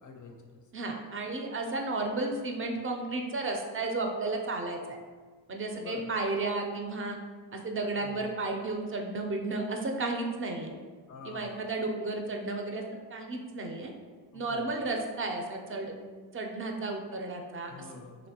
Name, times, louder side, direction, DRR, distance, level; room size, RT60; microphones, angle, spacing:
voice 1, 0.0-0.6 5.7-6.1 8.0-8.2 11.1-11.7 14.3-14.6 17.7-18.3, left 4 dB, 45° left, 2 dB, 0.4 m, -47 dB
voice 2, 0.7-5.0 5.5-7.2 7.5-10.8 11.2-12.8 13.1-13.9 14.3-15.9 16.3-17.9, right 2 dB, 30° right, 2 dB, 0.4 m, -33 dB
2.9 x 2.5 x 2.7 m, 1.4 s
cardioid pair, 70°, 46 cm